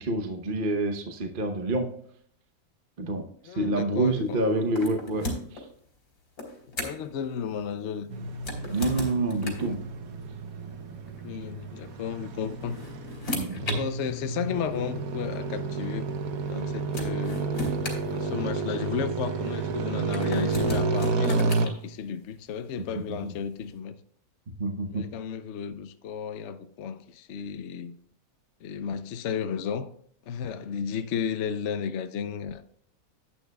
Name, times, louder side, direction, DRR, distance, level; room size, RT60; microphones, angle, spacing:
voice 1, 0.0-1.9 3.0-3.2 3.5-5.3 8.7-9.8 13.3-13.6 23.1-23.2 24.6-25.0, right 2 dB, 40° right, 5 dB, 1.0 m, -27 dB
voice 2, 3.4-4.6 6.8-8.2 8.6-8.8 11.2-12.8 13.7-16.1 16.5-17.5 18.1-23.9 24.9-28.0 28.6-29.9 30.3-32.6, left 7 dB, 60° left, 9 dB, 0.9 m, -33 dB
sound 1, 4.7-5.6 6.4-7.1 8.4-9.8 11.0-11.2 12.4-13.8 14.8-14.9 16.5-16.6 16.9-18.8 20.1-21.7, left 1 dB, 85° left, 3.1 m, -35 dB
sound 2, 8.1-21.7, right 4 dB, 70° right, 1.3 m, -31 dB
11.0 x 9.1 x 2.3 m, 0.64 s
omnidirectional pair, 1.6 m